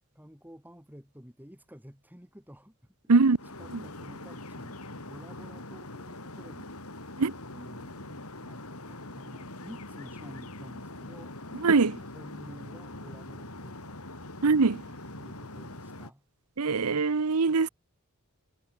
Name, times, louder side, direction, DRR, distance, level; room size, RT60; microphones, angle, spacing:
voice 1, 0.1-2.9 3.6-6.7 7.1-7.2 7.5-14.0 15.2-16.2, equal, 10° right, 6.0 m, -51 dB
sound 1, 3.4-16.1, left 2 dB, 75° left, 6.4 m, -43 dB
voice 2, 11.6-12.0 14.4-14.8 16.6-17.7, right 4 dB, 80° right, 0.8 m, -22 dB
head